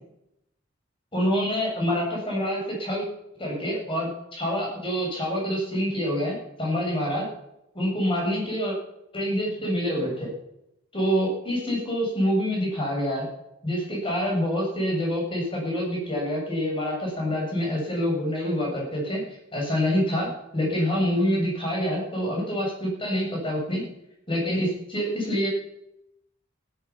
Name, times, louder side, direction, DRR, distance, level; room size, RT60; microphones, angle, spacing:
voice 1, 1.1-3.0 3.4-7.2 7.7-8.7 9.1-10.3 10.9-13.3 13.6-23.8 24.3-25.5, equal, 25° left, -2 dB, 7.8 m, -26 dB
15.5 x 10.5 x 7.3 m, 0.81 s
head